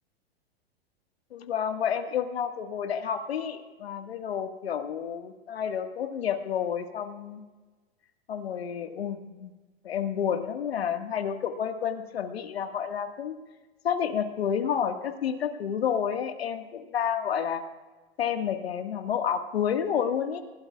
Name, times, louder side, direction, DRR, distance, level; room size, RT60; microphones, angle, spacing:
voice 1, 1.3-7.4 8.3-9.5 9.8-13.4 13.8-17.6 18.2-20.4, left 8 dB, 75° left, 6 dB, 1.8 m, -30 dB
30.0 x 17.0 x 2.4 m, 1.3 s
hypercardioid pair, 105°, 31 cm